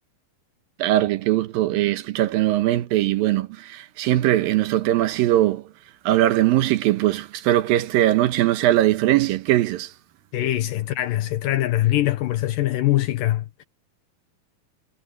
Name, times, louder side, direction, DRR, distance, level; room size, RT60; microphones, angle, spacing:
voice 1, 0.8-5.6 6.1-9.9, right 14 dB, 80° right, 2.7 m, -20 dB
voice 2, 10.3-13.6, left 14 dB, 75° left, 2.5 m, -23 dB
omnidirectional pair, 4.1 m